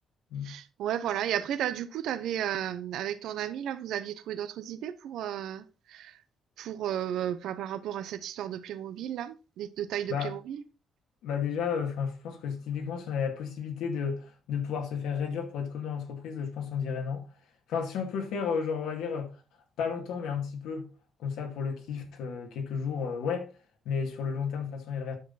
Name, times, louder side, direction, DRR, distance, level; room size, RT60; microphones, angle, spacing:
voice 1, 0.4-6.2 6.6-10.6, right 10 dB, 80° right, 0.8 m, -34 dB
voice 2, 11.2-17.3 17.7-19.3 19.8-20.9 21.2-23.5 23.9-25.2, left 6 dB, 85° left, 2.2 m, -32 dB
9.7 x 6.3 x 4.1 m
cardioid pair, 90°, 0 cm